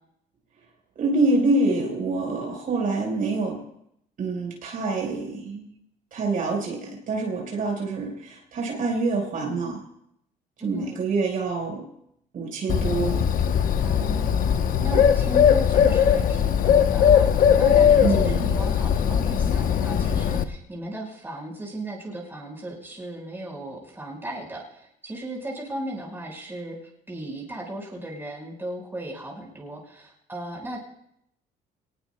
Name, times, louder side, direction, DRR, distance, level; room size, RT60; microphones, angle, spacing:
voice 1, 1.0-3.6 4.2-5.7 6.1-9.8 10.6-11.8 12.3-13.2 18.0-18.4, right 3 dB, 55° right, 0 dB, 4.2 m, -26 dB
voice 2, 10.6-11.0 13.8-26.8 27.1-30.8, right 1 dB, 15° right, -2 dB, 4.6 m, -36 dB
Bird, 12.7-20.4, left 8 dB, 55° left, 0.8 m, -20 dB
25.0 x 19.5 x 2.2 m, 0.76 s
cardioid pair, 110°, 17 cm